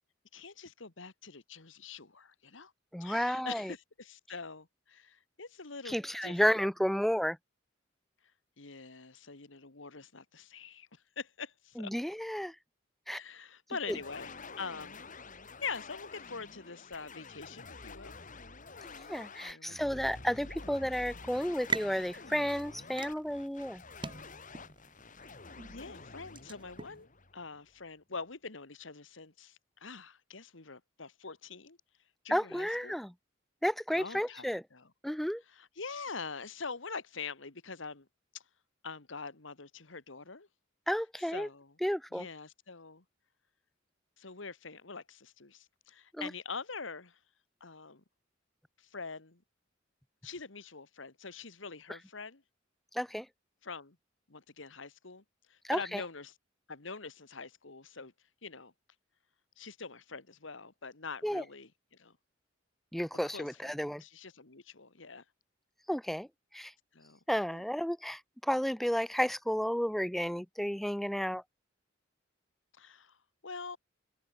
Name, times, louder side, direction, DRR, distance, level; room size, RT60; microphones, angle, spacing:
voice 1, 0.3-2.7 3.0-6.4 8.6-11.9 13.1-14.3 14.6-15.0 15.6-18.1 19.4-20.2 25.6-27.1 27.3-31.8 32.2-33.0 33.9-34.9 35.5-38.1 38.3-38.4 38.8-40.5 41.2-41.7 42.1-43.0 44.2-47.2 47.6-48.0 48.8-49.4 50.2-52.4 53.6-54.0 54.3-56.3 56.7-58.1 58.4-58.7 59.6-62.1 63.2-65.2 66.9-67.2 67.5-67.6 72.7-73.2 73.4-73.8, left 4 dB, 75° left, 1.9 m, -44 dB
voice 2, 2.9-3.7 5.9-7.4 11.8-12.6 13.1-13.2 13.9-14.0 19.1-23.8 32.3-33.1 33.6-34.6 35.0-35.4 40.9-41.5 41.8-42.3 46.1-46.3 52.9-53.3 55.6-56.0 61.2-61.4 62.9-64.0 65.9-66.3 66.5-66.7 67.3-71.4, equal, ahead, 0.4 m, -32 dB
sound 1, 13.9-27.8, left 4 dB, 45° left, 3.8 m, -49 dB
sound 2, 21.3-27.0, right 4 dB, 25° right, 3.1 m, -42 dB
head